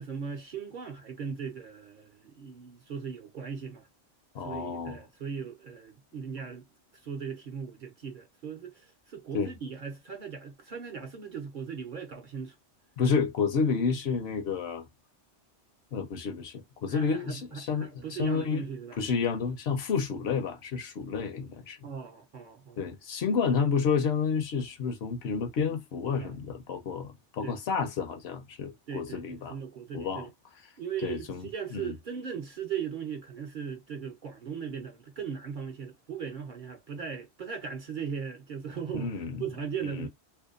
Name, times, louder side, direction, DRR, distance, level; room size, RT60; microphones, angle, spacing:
voice 1, 0.0-3.9 4.4-6.6 7.0-12.5 16.9-19.0 21.8-22.8 26.2-26.3 27.4-27.6 28.9-29.2 29.5-30.3 30.8-39.1 39.4-40.1, right 7 dB, 55° right, 0.6 m, -38 dB
voice 2, 4.3-5.0 9.3-9.5 13.0-14.8 15.9-18.6 18.9-21.8 22.8-29.6 29.9-30.3 31.0-32.0 38.9-39.4 39.8-40.1, left 5 dB, 65° left, 0.8 m, -30 dB
2.7 x 2.1 x 2.3 m
omnidirectional pair, 1.2 m